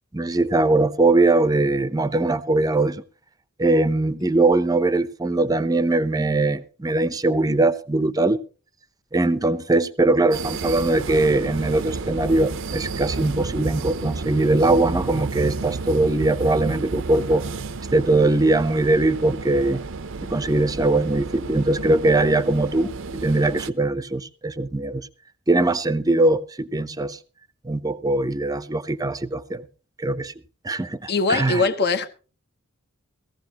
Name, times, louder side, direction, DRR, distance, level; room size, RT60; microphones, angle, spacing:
voice 1, 0.1-3.0 3.6-8.4 9.1-17.5 17.9-19.8 20.3-25.1 25.5-27.2 27.6-29.7 30.0-30.3 30.6-31.6, right 2 dB, 15° right, 0.7 m, -21 dB
sound 1, 10.3-23.7, right 4 dB, 60° right, 0.7 m, -31 dB
voice 2, 31.1-32.1, left 3 dB, 50° left, 1.1 m, -21 dB
18.0 x 15.0 x 2.9 m
head